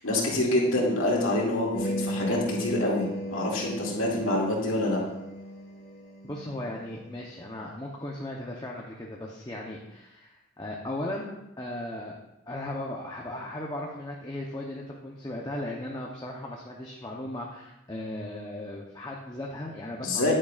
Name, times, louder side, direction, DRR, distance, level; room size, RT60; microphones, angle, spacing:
voice 1, 0.0-5.0 20.0-20.3, left 1 dB, 85° left, -3 dB, 2.3 m, -26 dB
sound 1, 1.7-7.2, equal, 45° left, 1.6 m, -36 dB
voice 2, 6.2-12.1 12.5-20.3, left 1 dB, 20° left, -2 dB, 0.7 m, -37 dB
10.0 x 9.4 x 2.4 m, 0.89 s
head